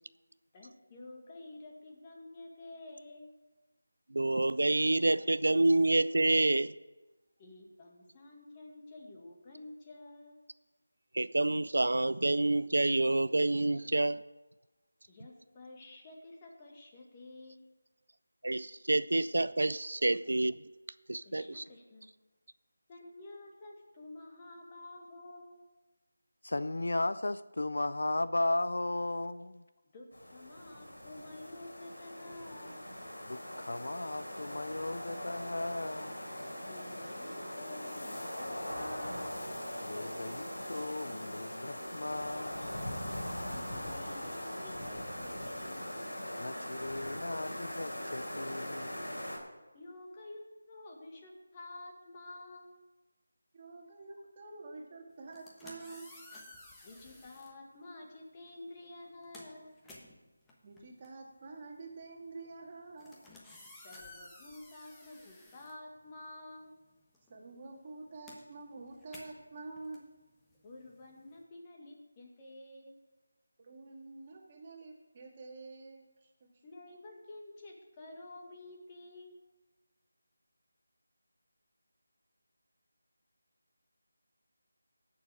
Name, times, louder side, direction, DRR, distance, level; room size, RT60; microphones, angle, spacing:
voice 1, 0.5-3.4 7.4-10.4 15.1-17.7 21.2-22.1 22.9-25.6 29.8-32.9 36.6-39.3 43.4-45.8 49.7-52.8 56.8-59.8 63.8-66.8 70.6-73.0 76.6-79.4, left 2 dB, 20° left, 1.8 m, -50 dB
voice 2, 4.1-6.7 11.1-14.2 18.4-20.5 21.1-21.6, right 2 dB, 75° right, 0.4 m, -28 dB
voice 3, 26.4-29.7 33.2-36.2 39.8-42.8 46.4-49.0, left 2 dB, 70° left, 0.5 m, -36 dB
sound 1, 30.1-49.4, equal, 85° left, 3.5 m, -41 dB
voice 4, 53.5-56.1 60.6-63.2 67.3-70.0 73.6-76.5, right 3 dB, 30° right, 1.8 m, -48 dB
sound 2, 55.2-57.6 58.5-58.7 59.0-66.5 66.8-71.4, left 2 dB, 5° left, 1.1 m, -55 dB
17.0 x 6.7 x 4.9 m
figure-of-eight pair, 165°, 0 cm